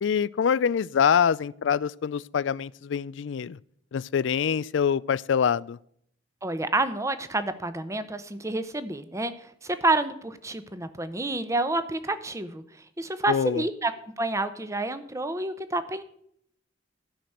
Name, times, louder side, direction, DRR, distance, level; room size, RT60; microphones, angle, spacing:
voice 1, 0.0-3.6 3.9-5.8 13.3-13.6, left 7 dB, 70° left, 0.4 m, -25 dB
voice 2, 6.4-12.6 13.0-16.0, right 2 dB, 15° right, 0.8 m, -29 dB
13.0 x 5.9 x 7.8 m
head